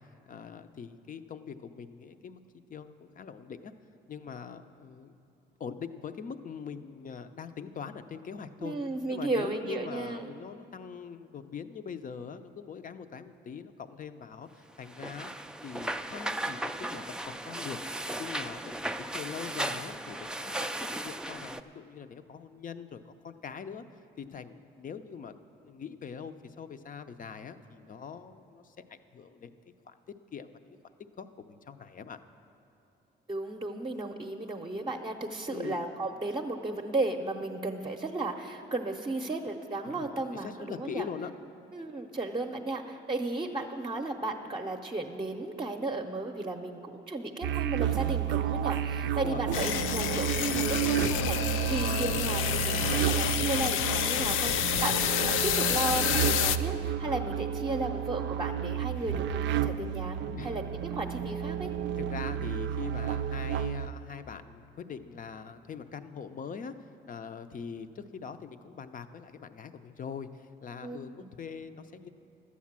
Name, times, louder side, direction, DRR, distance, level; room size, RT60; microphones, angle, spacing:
voice 1, 0.1-2.4 2.7-3.7 4.1-5.1 5.6-8.8 9.1-15.3 15.6-17.8 18.2-20.7 21.0-23.8 24.2-29.6 29.9-30.0 30.3-30.8 31.2-32.2 35.5-35.9 39.8-41.3 49.0-49.4 60.4-60.6 62.0-66.7 67.1-72.1, left 6 dB, 45° left, 10 dB, 0.6 m, -42 dB
voice 2, 8.6-10.3 33.3-41.1 41.7-61.7 70.8-71.3, right 2 dB, 25° right, 1 dB, 0.7 m, -34 dB
sound 1, 14.9-21.6, right 1 dB, 5° right, 0.3 m, -36 dB
sound 2, 47.4-63.9, right 10 dB, 65° right, 0.4 m, -31 dB
sound 3, 49.5-56.6, left 9 dB, 85° left, 0.5 m, -29 dB
12.0 x 8.4 x 7.4 m, 2.8 s
cardioid pair, 90°, 20 cm